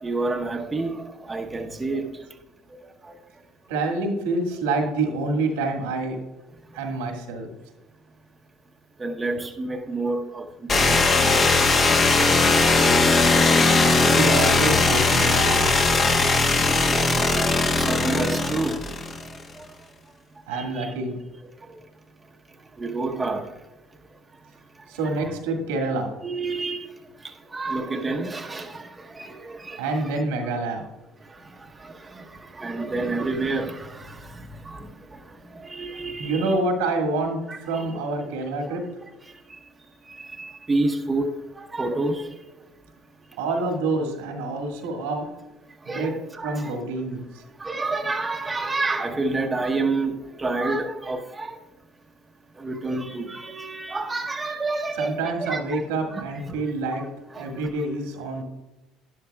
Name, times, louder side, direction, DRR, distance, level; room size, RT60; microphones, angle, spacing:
voice 1, 0.0-2.1 3.0-3.2 9.0-11.8 16.8-16.9 17.3-17.5 17.7-18.8 20.5-20.9 22.8-23.5 25.0-25.3 26.2-26.9 27.5-30.1 31.8-35.2 35.5-36.5 37.5-38.0 38.8-38.9 40.1-41.3 41.6-42.3 45.9-46.7 47.6-51.6 52.6-55.8 56.1-56.6 56.9-57.1 57.3-57.5, right 3 dB, 20° right, 0.9 m, -29 dB
voice 2, 3.7-6.2 6.7-7.5 14.1-15.8 20.5-21.1 24.9-26.1 29.8-30.8 36.2-37.4 37.7-38.8 43.4-45.3 45.9-46.1 46.4-47.4 55.0-57.0 57.4-58.4, right 3 dB, 85° right, 1.7 m, -27 dB
sound 1, 10.7-19.4, left 3 dB, 40° left, 1.3 m, -19 dB
12.0 x 10.5 x 2.3 m
hypercardioid pair, 70°, 0 cm